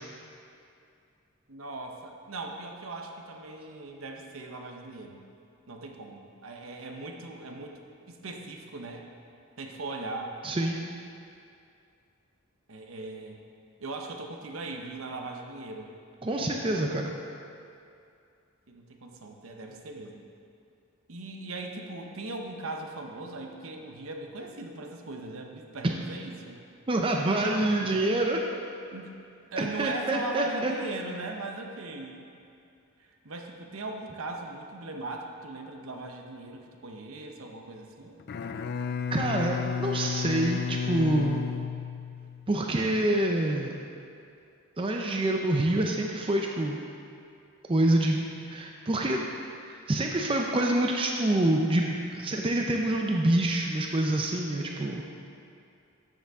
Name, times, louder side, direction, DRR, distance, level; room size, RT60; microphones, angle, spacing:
voice 1, 1.5-5.2 5.7-7.8 8.1-9.1 9.6-10.4 12.7-13.4 13.8-15.9 18.7-20.2 21.1-26.6 27.6-27.9 28.9-29.2 29.5-32.3 33.0-38.2 54.6-55.0, right 2 dB, 65° right, 2 dB, 0.9 m, -39 dB
voice 2, 10.4-10.8 16.2-17.1 26.9-28.4 29.6-30.7 39.1-41.4 42.5-43.7 44.8-46.8 47.7-48.2 48.5-49.2 49.6-55.0, right 1 dB, 25° right, 1 dB, 0.5 m, -26 dB
Bowed string instrument, 38.2-42.5, left 6 dB, 45° left, 0.3 m, -32 dB
12.5 x 6.8 x 3.6 m, 2.5 s
head